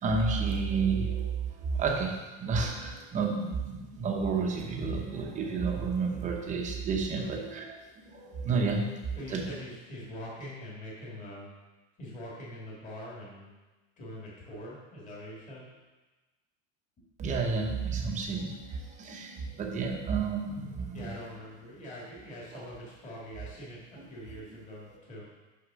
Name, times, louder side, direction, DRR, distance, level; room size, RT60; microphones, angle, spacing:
voice 1, 0.0-7.6 8.0-9.0 9.3-9.4 17.2-21.1, right 4 dB, 20° right, 1 dB, 0.8 m, -31 dB
voice 2, 9.2-11.5 12.0-13.5 14.0-15.8 17.0-17.1 20.9-25.2, left 1 dB, 20° left, -6 dB, 2.0 m, -43 dB
6.5 x 5.8 x 6.1 m, 1.2 s
cardioid pair, 180°, 37 cm